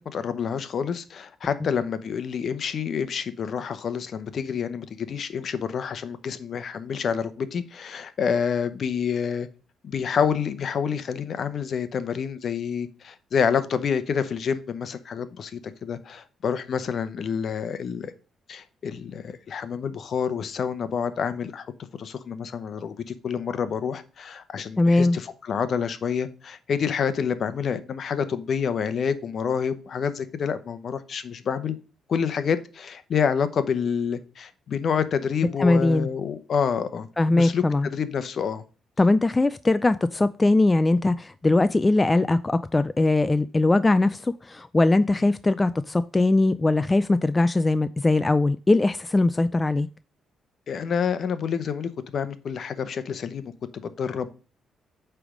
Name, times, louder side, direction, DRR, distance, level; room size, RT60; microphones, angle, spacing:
voice 1, 0.0-9.5 9.8-18.1 18.5-21.7 22.0-31.8 32.1-38.6 50.7-53.4 53.7-54.3, left 7 dB, 55° left, 0.8 m, -28 dB
voice 2, 24.8-25.2 35.6-36.1 37.2-37.9 39.0-49.9, left 2 dB, 20° left, 0.3 m, -21 dB
8.5 x 3.4 x 5.1 m
cardioid pair, 90°, 0 cm